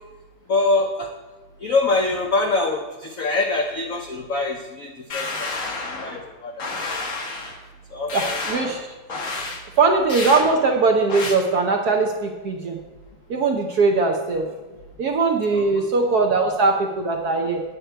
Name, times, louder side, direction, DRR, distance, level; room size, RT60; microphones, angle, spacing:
voice 1, 0.5-1.1 1.6-5.5 5.9-7.0 7.9-8.4 15.5-15.9, left 3 dB, 70° left, 3 dB, 0.7 m, -24 dB
sound 1, 5.1-6.2 6.6-7.6 8.1-8.7 9.1-9.6 10.1-10.5 11.1-11.3, left 3 dB, 45° left, 1.3 m, -29 dB
voice 2, 8.1-8.9 9.8-12.8 13.3-14.4 15.0-17.6, right 4 dB, 65° right, 2 dB, 1.0 m, -20 dB
9.2 x 8.0 x 4.5 m, 1.2 s
omnidirectional pair, 2.4 m